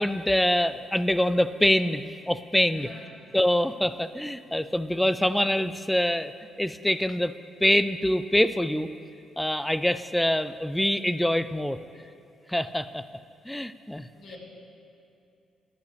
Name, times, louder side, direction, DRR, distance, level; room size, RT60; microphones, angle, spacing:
voice 1, 0.0-2.9 3.3-6.3 6.6-7.3 7.6-8.9 9.4-11.8 12.5-13.0 13.4-14.1, left 1 dB, 5° left, 13 dB, 0.3 m, -25 dB
voice 2, 2.7-3.2 14.1-14.4, left 3 dB, 65° left, -3 dB, 2.3 m, -46 dB
11.0 x 9.1 x 3.3 m, 2.6 s
cardioid pair, 90°, 0 cm